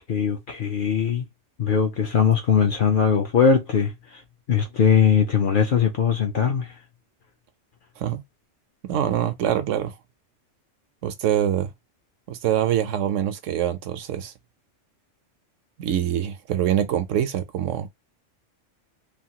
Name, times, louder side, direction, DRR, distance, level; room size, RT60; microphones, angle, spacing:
voice 1, 0.1-1.2 1.6-4.2 4.5-6.7, left 7 dB, 60° left, 0.5 m, -20 dB
voice 2, 8.8-9.9 11.0-11.7 12.3-14.3 15.8-17.9, right 10 dB, 80° right, 0.9 m, -24 dB
3.1 x 2.3 x 2.8 m
omnidirectional pair, 1.3 m